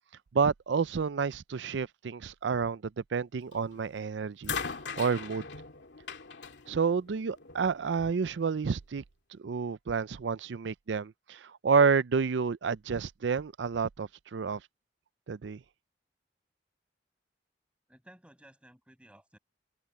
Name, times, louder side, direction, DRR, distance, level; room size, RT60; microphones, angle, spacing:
voice 1, 0.3-2.8 3.1-4.6 5.0-5.4 6.7-9.0 9.3-14.6 15.3-15.6, right 5 dB, 85° right, 0.5 m, -29 dB
sound 1, 3.5-3.9 4.4-7.7 8.7-8.8, left 6 dB, 80° left, 2.5 m, -40 dB
voice 2, 17.9-19.4, right 1 dB, 5° right, 6.0 m, -56 dB
head